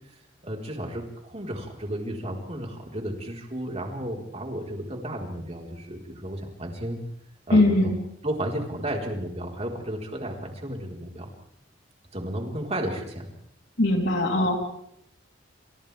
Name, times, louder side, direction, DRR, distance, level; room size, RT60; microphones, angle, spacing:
voice 1, 0.4-7.0 7.5-7.9 8.2-11.3 12.1-13.3, right 1 dB, 35° right, 0 dB, 4.5 m, -33 dB
voice 2, 7.5-8.0 13.8-14.5, left 2 dB, 65° left, 0 dB, 3.8 m, -20 dB
29.5 x 28.5 x 3.5 m, 0.74 s
head